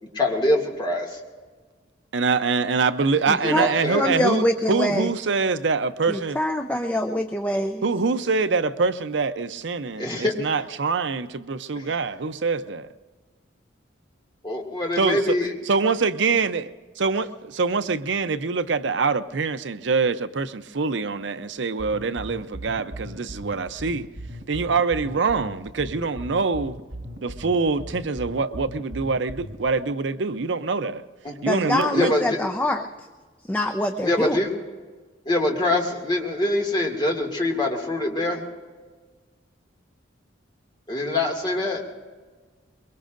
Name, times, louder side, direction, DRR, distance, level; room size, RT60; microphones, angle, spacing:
voice 1, 0.0-1.2 3.3-4.1 10.0-10.3 11.8-11.9 14.4-15.5 31.2-31.3 31.9-32.4 34.0-34.5 35.2-38.5 40.9-41.8, left 1 dB, 25° left, 2.3 m, -24 dB
voice 2, 2.1-6.4 7.8-12.9 15.0-15.2 15.7-24.1 24.5-26.8 27.2-31.0 31.4-32.1, right 4 dB, 70° right, 0.6 m, -24 dB
voice 3, 3.3-3.7 3.9-5.1 6.1-7.8 31.5-32.9 33.5-34.4, left 1 dB, 10° left, 0.5 m, -24 dB
sound 1, 21.8-29.8, equal, 90° right, 1.4 m, -38 dB
23.5 x 22.5 x 2.6 m
head